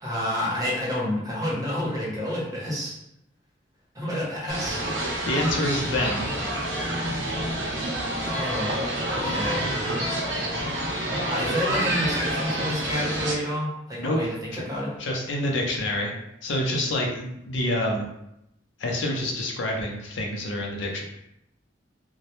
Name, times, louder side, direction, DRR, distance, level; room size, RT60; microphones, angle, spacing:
voice 1, 0.0-2.9 3.9-4.9 8.3-8.8 9.1-9.6 11.3-14.9, left 1 dB, 20° right, -5 dB, 0.7 m, -29 dB
sound 1, 4.5-13.3, right 1 dB, 80° right, 0.6 m, -28 dB
voice 2, 5.3-6.3 14.0-14.2 14.5-14.6 15.0-16.1 16.4-18.1 18.8-21.0, left 1 dB, 80° left, 0 dB, 0.5 m, -27 dB
2.1 x 2.0 x 2.9 m, 0.82 s
head